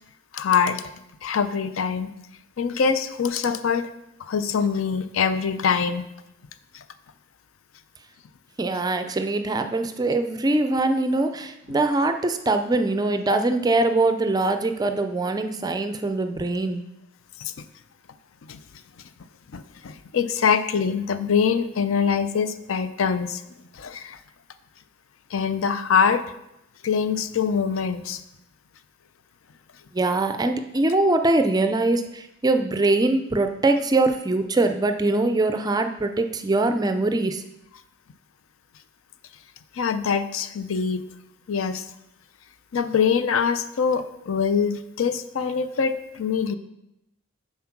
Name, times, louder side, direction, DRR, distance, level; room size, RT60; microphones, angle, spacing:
voice 1, 0.3-0.8 1.2-2.1 2.6-3.9 4.2-6.1 17.4-17.5 18.5-18.6 19.5-23.4 23.7-24.2 25.3-26.2 26.8-28.2 39.8-41.0 41.5-41.8 42.7-46.6, left 6 dB, 70° left, 12 dB, 0.5 m, -24 dB
voice 2, 8.6-16.8 29.9-37.4, right 2 dB, 20° right, 7 dB, 0.4 m, -22 dB
7.4 x 4.3 x 5.9 m, 0.85 s
head